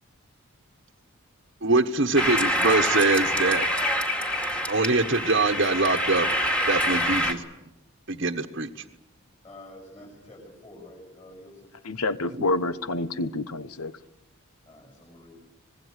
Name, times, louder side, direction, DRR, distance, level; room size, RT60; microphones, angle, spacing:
voice 1, 1.6-3.7 4.7-6.3 6.6-7.4 8.1-8.7, right 3 dB, 50° right, 3 dB, 1.2 m, -23 dB
sound 1, 2.1-7.3, equal, 5° left, 2.2 m, -26 dB
voice 2, 9.4-11.7 14.6-15.4, left 1 dB, 25° left, -1 dB, 6.6 m, -48 dB
voice 3, 11.8-13.9, left 2 dB, 85° left, 14 dB, 1.1 m, -28 dB
25.0 x 20.5 x 8.2 m, 0.94 s
head